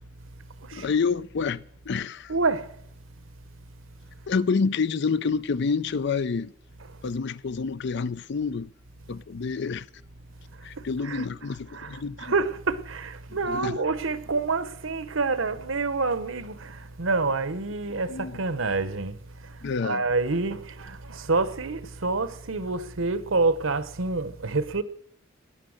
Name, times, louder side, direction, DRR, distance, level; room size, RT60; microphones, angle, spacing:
voice 1, 0.7-2.3 4.3-6.5 7.0-8.7 9.1-9.9 10.6-12.3 13.5-13.8 18.1-18.4 19.6-20.0, left 5 dB, 60° left, 0.5 m, -28 dB
voice 2, 2.3-2.7 6.9-7.0 10.8-11.3 11.7-24.8, right 3 dB, 75° right, 1.0 m, -28 dB
18.5 x 9.8 x 6.5 m
head